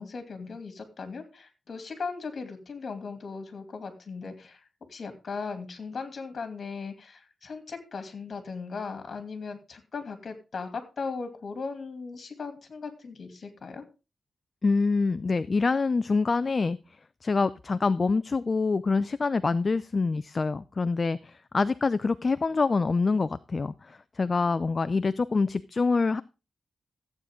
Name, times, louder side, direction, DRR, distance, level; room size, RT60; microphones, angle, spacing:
voice 1, 0.0-4.6 4.9-13.8, left 4 dB, 55° left, 7 dB, 2.7 m, -38 dB
voice 2, 14.6-16.8 17.2-26.2, left 4 dB, 40° left, 14 dB, 0.4 m, -26 dB
14.5 x 8.5 x 3.7 m, 0.31 s
cardioid pair, 80°, 0 cm